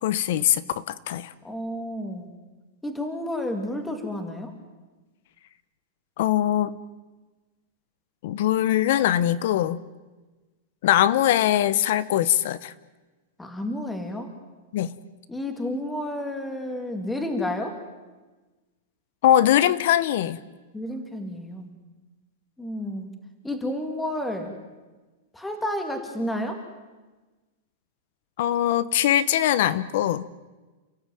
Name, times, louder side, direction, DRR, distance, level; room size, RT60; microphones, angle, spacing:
voice 1, 0.0-1.3 6.2-6.8 8.2-9.8 10.8-12.7 14.7-14.9 19.2-20.4 28.4-30.2, left 12 dB, 50° left, 17 dB, 0.9 m, -22 dB
voice 2, 1.4-2.3 2.8-4.5 13.4-14.3 15.3-17.7 20.7-21.7 22.6-23.1 23.4-24.5 25.3-26.6, left 1 dB, 5° left, 5 dB, 2.2 m, -30 dB
30.0 x 16.0 x 9.2 m, 1.2 s
supercardioid pair, 175°, 0 cm